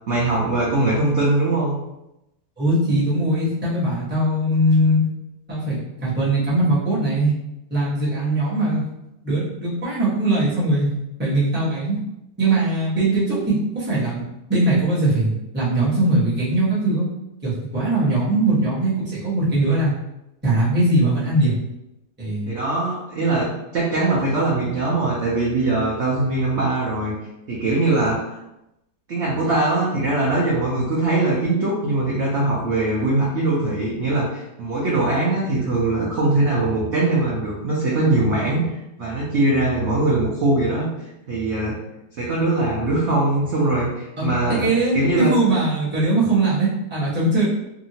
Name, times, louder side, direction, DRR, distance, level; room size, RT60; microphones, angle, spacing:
voice 1, 0.1-1.7 22.5-27.1 27.5-28.2 29.1-38.6 39.0-40.9 41.3-41.8 42.2-44.7 44.9-45.4, right 2 dB, 60° right, -5 dB, 0.7 m, -21 dB
voice 2, 2.6-5.0 5.5-7.3 7.7-8.8 9.2-10.9 11.2-12.0 12.4-17.1 17.4-19.9 20.4-21.5 22.2-22.5 44.2-47.4, right 2 dB, 10° right, -9 dB, 0.7 m, -20 dB
2.8 x 2.6 x 2.7 m, 0.89 s
omnidirectional pair, 1.8 m